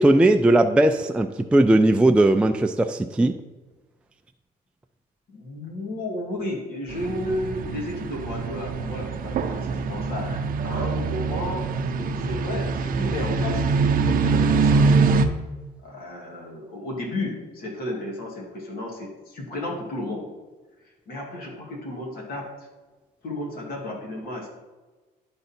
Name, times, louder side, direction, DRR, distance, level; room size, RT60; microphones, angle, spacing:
voice 1, 0.0-3.3, right 1 dB, 5° right, 5 dB, 0.3 m, -18 dB
voice 2, 5.3-11.7 12.0-13.7 14.0-14.9 15.8-20.3 21.1-22.5 23.2-24.5, left 1 dB, 60° left, 0 dB, 2.2 m, -33 dB
sound 1, 6.9-15.3, right 4 dB, 55° right, 0.7 m, -24 dB
11.5 x 3.9 x 4.3 m, 1.2 s
cardioid pair, 110°, 17 cm